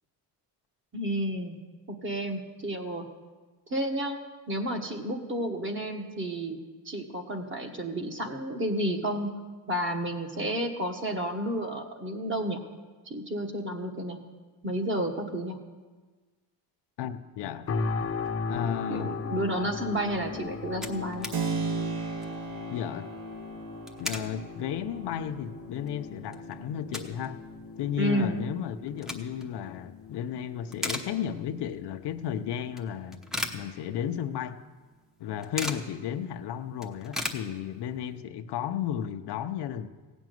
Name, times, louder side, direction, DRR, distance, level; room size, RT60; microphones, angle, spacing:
voice 1, 0.9-1.6 1.9-3.1 3.7-4.2 4.5-6.6 6.8-9.3 9.7-12.6 13.1-14.2 14.6-15.6 18.9-21.3 28.0-28.4, right 1 dB, 25° right, 1.4 m, -31 dB
voice 2, 17.0-17.7 18.5-19.2 22.7-23.1 24.0-27.4 27.8-33.2 33.5-34.6 35.2-39.9, left 9 dB, 65° left, 0.8 m, -33 dB
sound 1, 17.7-32.7 33.2-33.3, left 4 dB, 30° left, 0.8 m, -38 dB
sound 2, 20.2-20.3 20.5-21.4 21.8-21.9 22.1-22.4 23.6-24.3 24.8-24.9 25.5-25.6 25.9-27.3 27.6-27.7 28.7-29.5 30.0-30.3 30.6-31.6 32.0-32.1 32.8-34.3 34.5-34.6 34.9-35.9 36.3-36.4 36.6-38.0, left 1 dB, ahead, 0.8 m, -37 dB
Keyboard (musical), 21.3-29.9, right 5 dB, 55° right, 1.3 m, -38 dB
16.5 x 6.2 x 9.2 m
cardioid pair, 150°, 43 cm